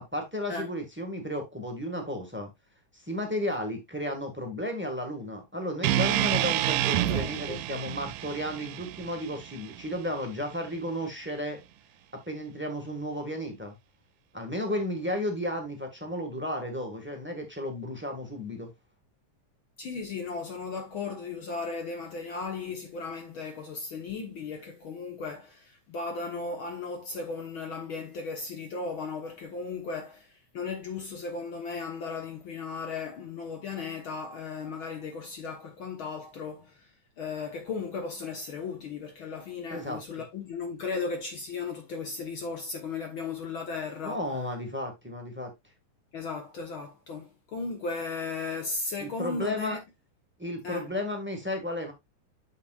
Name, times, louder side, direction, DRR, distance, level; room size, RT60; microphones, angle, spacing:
voice 1, 0.0-2.5 2.9-11.6 12.1-13.8 14.3-18.7 39.7-40.0 44.0-45.5 49.0-49.8 50.4-51.9, left 1 dB, 10° right, 0.5 m, -33 dB
sound 1, 5.8-10.0, right 14 dB, 85° right, 2.2 m, -29 dB
voice 2, 6.9-7.6 19.8-36.9 37.2-44.2 46.1-49.8 50.6-50.9, left 4 dB, 55° left, 1.5 m, -36 dB
8.5 x 7.2 x 2.4 m
omnidirectional pair, 3.8 m